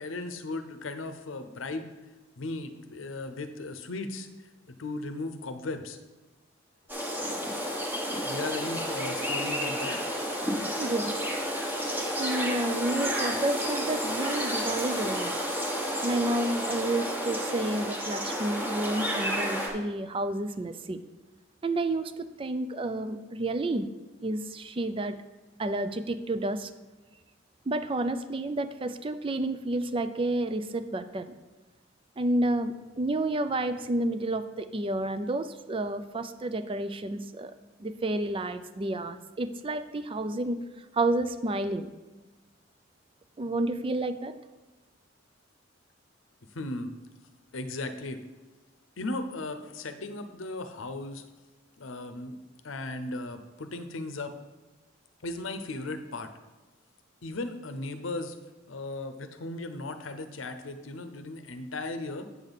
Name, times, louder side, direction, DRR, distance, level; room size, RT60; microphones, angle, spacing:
voice 1, 0.0-1.9 2.4-4.3 4.7-6.0 8.2-10.0 46.5-46.9 47.5-48.2 49.0-51.2 51.8-52.4 52.6-54.3 55.2-56.3 57.2-58.4 58.7-62.3, left 2 dB, 80° left, 9 dB, 0.7 m, -36 dB
sound 1, 6.9-19.7, equal, 10° right, 1.2 m, -31 dB
voice 2, 10.8-11.2 12.2-15.3 16.0-21.0 21.6-23.9 24.2-25.2 25.6-26.7 27.7-31.3 32.2-37.5 37.8-40.6 40.9-41.9 43.4-44.4, right 2 dB, 25° right, 11 dB, 0.4 m, -30 dB
8.3 x 6.9 x 4.1 m, 1.2 s
head